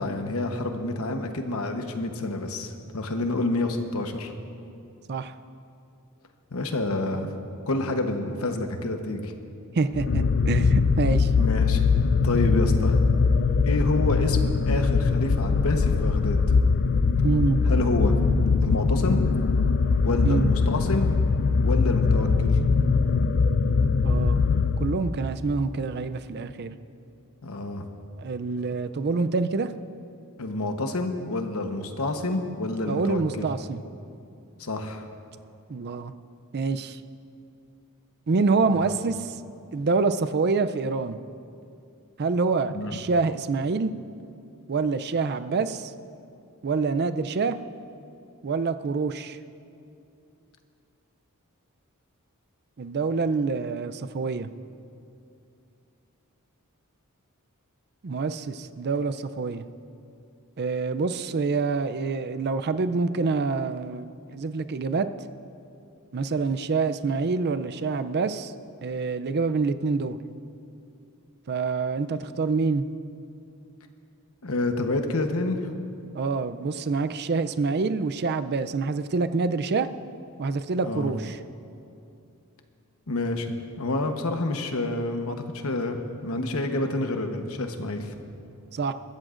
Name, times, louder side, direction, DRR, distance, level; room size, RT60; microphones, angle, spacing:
voice 1, 0.0-4.3 6.5-7.3 7.7-9.3 11.4-11.8 12.2-13.0 13.6-16.4 17.7-18.1 18.6-19.2 20.0-21.1 21.6-22.6 27.4-27.8 30.4-33.5 34.6-35.0 38.7-38.8 42.7-43.0 74.4-75.7 80.8-81.1 83.1-88.2, left 2 dB, 70° left, 5 dB, 1.1 m, -28 dB
voice 2, 9.8-11.3 17.2-17.6 20.2-20.5 24.0-24.4 24.8-26.7 28.2-29.7 32.9-33.8 35.7-36.1 36.5-37.0 38.3-39.4 39.7-41.2 42.2-43.9 44.7-45.9 46.6-47.6 48.4-49.4 52.8-54.5 58.0-59.6 60.6-64.1 64.3-65.1 66.1-68.5 68.8-70.2 71.5-72.8 76.1-79.9 80.4-81.4 88.7-88.9, right 4 dB, 50° right, 11 dB, 0.5 m, -26 dB
sound 1, 9.9-25.3, left 4 dB, 50° left, 0.4 m, -22 dB
21.5 x 14.0 x 2.6 m, 2.6 s
head